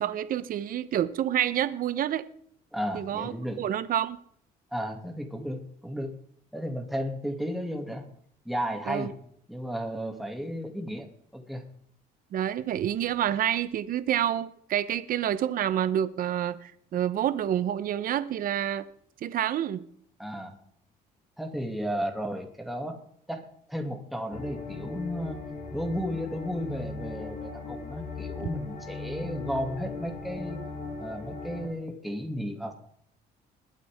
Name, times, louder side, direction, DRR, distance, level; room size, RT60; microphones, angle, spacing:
voice 1, 0.0-2.2 2.9-4.2 8.9-9.1 12.3-18.9 19.2-19.8, right 10 dB, 55° right, 0.9 m, -28 dB
voice 2, 2.7-3.6 4.7-6.2 6.5-8.1 8.4-9.1 9.5-11.6 20.2-20.6 21.4-23.0 23.3-25.4 25.7-30.6 31.0-32.7, equal, ahead, 2.4 m, -34 dB
sound 1, 24.3-31.7, left 3 dB, 50° left, 3.9 m, -38 dB
21.0 x 8.5 x 3.6 m
cardioid pair, 110°, 17 cm